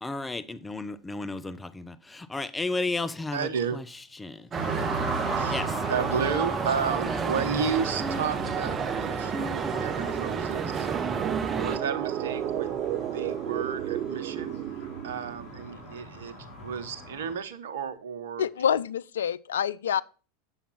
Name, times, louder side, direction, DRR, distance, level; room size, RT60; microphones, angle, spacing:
voice 1, 0.0-3.5 4.2-4.4 5.4-5.7, left 3 dB, 10° left, 0.8 m, -33 dB
voice 2, 3.3-3.8 5.4-10.9 11.6-12.7 13.1-14.7 15.0-16.4 16.6-18.5, right 6 dB, 75° right, 1.0 m, -32 dB
sound 1, 4.5-17.3, equal, 50° left, 4.0 m, -40 dB
sound 2, 4.5-11.8, right 5 dB, 25° right, 1.0 m, -30 dB
sound 3, 5.5-15.9, right 11 dB, 45° right, 0.6 m, -35 dB
voice 3, 18.4-20.0, left 8 dB, 80° left, 0.5 m, -27 dB
9.0 x 7.1 x 4.2 m
hypercardioid pair, 90°, 0 cm